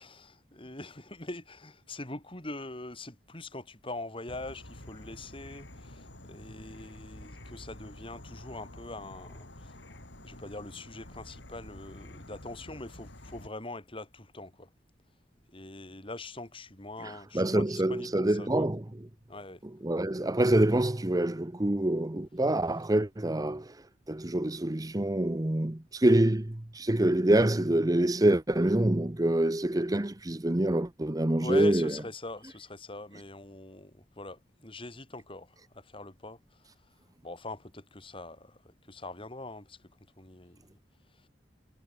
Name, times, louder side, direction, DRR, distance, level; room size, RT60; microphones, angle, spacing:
voice 1, 0.0-10.0 10.2-14.7 15.5-18.7 19.3-19.6 31.4-36.4 37.2-38.6 38.9-39.8 40.2-40.8, left 2 dB, 30° left, 3.4 m, -43 dB
Insect / Frog, 4.3-13.5, left 1 dB, 70° left, 4.2 m, -49 dB
voice 2, 17.0-18.8 19.8-23.8 24.1-31.9, right 1 dB, 20° right, 0.8 m, -26 dB
head